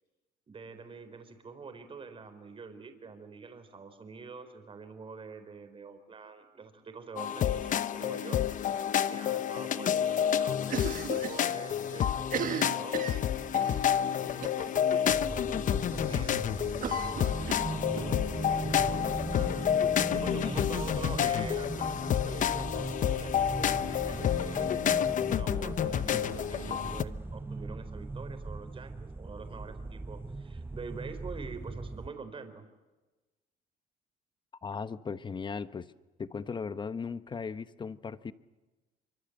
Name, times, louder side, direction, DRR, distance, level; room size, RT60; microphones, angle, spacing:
voice 1, 0.5-8.8 9.1-32.7, right 5 dB, 30° right, 8 dB, 4.1 m, -46 dB
sound 1, 7.2-27.0, left 9 dB, 50° left, 0.9 m, -29 dB
Cough, 10.7-11.5 11.7-11.8 12.2-13.8 14.4-14.7 15.0-15.1 15.5-15.6 16.8-18.1, right 8 dB, 55° right, 1.7 m, -36 dB
sound 2, 15.1-32.1, right 3 dB, 15° right, 0.8 m, -39 dB
voice 2, 34.6-35.9 36.2-38.3, left 5 dB, 25° left, 13 dB, 1.0 m, -37 dB
25.0 x 24.5 x 8.0 m, 1.2 s
cardioid pair, 110°, 17 cm